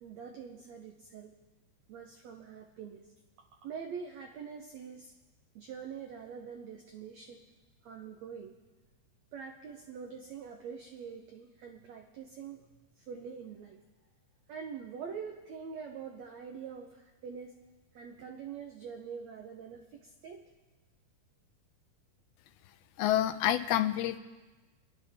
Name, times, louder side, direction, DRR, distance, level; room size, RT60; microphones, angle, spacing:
voice 1, 0.0-1.3 1.9-5.1 5.5-7.4 7.8-8.6 9.3-13.8 14.5-17.6 17.9-20.5, right 6 dB, 80° right, 3 dB, 1.5 m, -45 dB
voice 2, 23.0-24.2, left 12 dB, 90° left, 11 dB, 2.6 m, -28 dB
25.5 x 11.0 x 3.6 m, 1.2 s
omnidirectional pair, 4.3 m